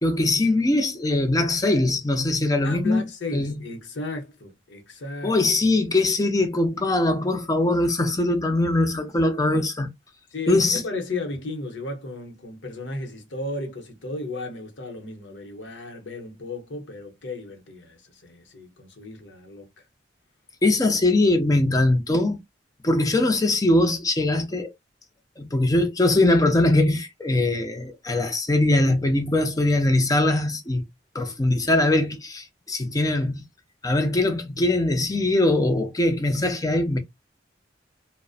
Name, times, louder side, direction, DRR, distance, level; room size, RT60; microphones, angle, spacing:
voice 1, 0.0-3.5 5.2-9.9 10.5-10.8 20.6-22.4 22.8-24.7 25.4-30.8 31.1-33.4 33.8-37.0, left 2 dB, 20° left, 0.5 m, -21 dB
voice 2, 2.6-5.4 10.3-19.8, left 2 dB, 90° left, 0.8 m, -34 dB
2.5 x 2.1 x 2.3 m
head